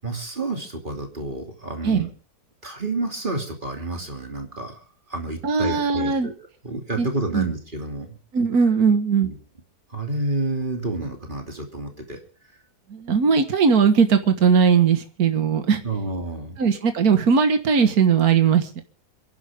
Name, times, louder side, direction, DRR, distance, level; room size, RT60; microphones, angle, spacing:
voice 1, 0.0-2.1 2.6-4.8 5.1-6.3 6.6-8.2 9.2-9.4 9.9-12.2 15.8-16.6, right 2 dB, 30° right, 3 dB, 3.1 m, -29 dB
voice 2, 5.4-6.3 7.0-7.1 7.3-7.5 8.3-9.3 12.9-15.8 16.6-18.8, right 6 dB, 65° right, 8 dB, 2.0 m, -19 dB
28.0 x 11.5 x 3.6 m, 0.39 s
omnidirectional pair, 1.7 m